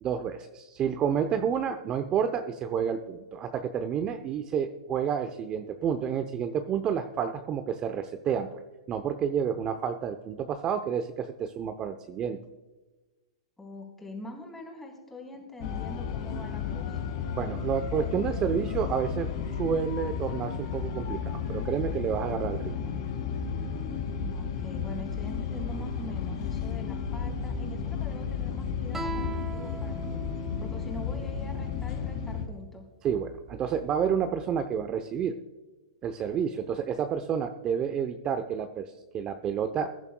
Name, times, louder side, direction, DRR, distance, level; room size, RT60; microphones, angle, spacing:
voice 1, 0.0-8.6 8.9-12.4 17.4-22.7 33.0-35.4 36.0-39.9, right 7 dB, 30° right, 8 dB, 0.7 m, -30 dB
voice 2, 13.6-17.2 24.2-30.1 30.6-32.9, left 2 dB, 10° left, 1 dB, 3.7 m, -44 dB
sound 1, 15.6-32.4, left 6 dB, 55° left, 3.4 m, -33 dB
Guitar, 28.9-32.2, right 4 dB, 10° right, 1.2 m, -40 dB
21.5 x 10.5 x 2.3 m, 1.2 s
hypercardioid pair, 125°, 3 cm